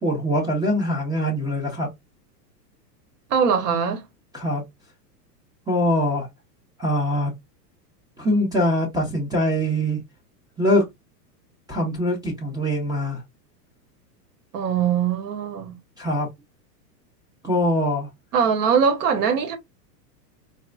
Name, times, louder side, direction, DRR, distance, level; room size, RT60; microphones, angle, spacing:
voice 1, 0.0-1.9 4.3-4.6 5.7-6.3 6.8-7.3 8.2-10.0 10.6-10.9 11.7-13.2 16.0-16.3 17.4-18.1, equal, 10° right, 0.6 m, -23 dB
voice 2, 3.3-4.0 14.5-15.7 18.3-19.6, right 7 dB, 70° right, 1.1 m, -21 dB
4.2 x 2.0 x 2.3 m
supercardioid pair, 135°, 49 cm